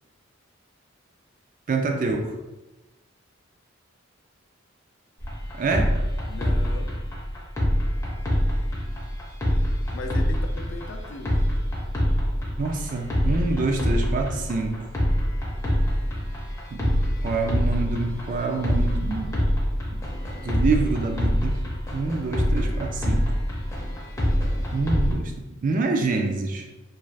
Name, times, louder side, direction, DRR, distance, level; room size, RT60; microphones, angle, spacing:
voice 1, 1.7-2.3 5.6-6.0 12.6-14.9 16.7-19.3 20.4-21.7 21.9-23.3 24.7-26.7, right 3 dB, 40° right, 3 dB, 0.3 m, -26 dB
sound 1, 5.2-25.1, equal, 15° left, 0.5 m, -25 dB
voice 2, 6.3-7.0 9.9-11.4, left 3 dB, 65° left, 4 dB, 0.4 m, -38 dB
2.4 x 2.3 x 3.2 m, 1.0 s
head